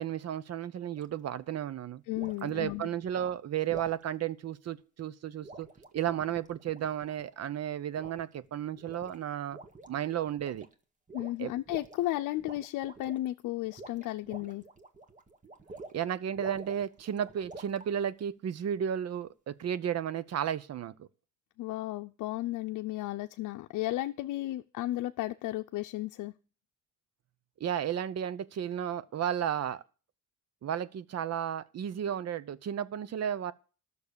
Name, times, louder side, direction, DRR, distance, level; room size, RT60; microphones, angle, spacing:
voice 1, 0.0-2.0 2.4-5.7 5.9-9.6 9.9-10.7 11.4-11.5 15.9-21.1 27.6-29.8 30.6-33.5, right 9 dB, 55° right, 0.8 m, -33 dB
sound 1, 0.9-1.2 2.1-2.5 3.7-4.0 5.4-7.3 7.9-8.4 8.8-9.2 9.5-9.9 10.3-10.7 11.1-12.0 12.4-13.3 13.6-16.0 16.4-17.9, right 2 dB, 25° right, 1.7 m, -48 dB
voice 2, 2.1-2.9 11.1-14.6 21.6-26.3, left 16 dB, 90° left, 0.6 m, -34 dB
12.0 x 6.7 x 6.8 m
cardioid pair, 90°, 30 cm